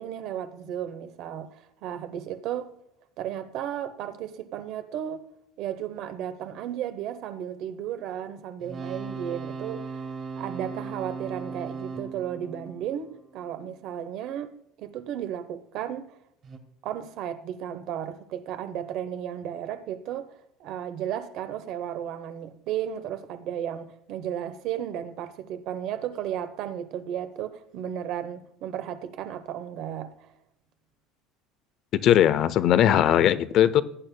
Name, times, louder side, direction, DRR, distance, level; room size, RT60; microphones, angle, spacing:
voice 1, 0.0-2.7 3.2-5.3 5.6-14.5 14.8-16.1 16.8-30.3, right 10 dB, 60° right, 1.0 m, -34 dB
sound 1, 8.6-13.7 16.4-16.6, right 4 dB, 40° right, 2.1 m, -38 dB
voice 2, 31.9-33.8, left 10 dB, 55° left, 0.6 m, -19 dB
17.5 x 9.0 x 2.2 m
supercardioid pair, 110°, 0 cm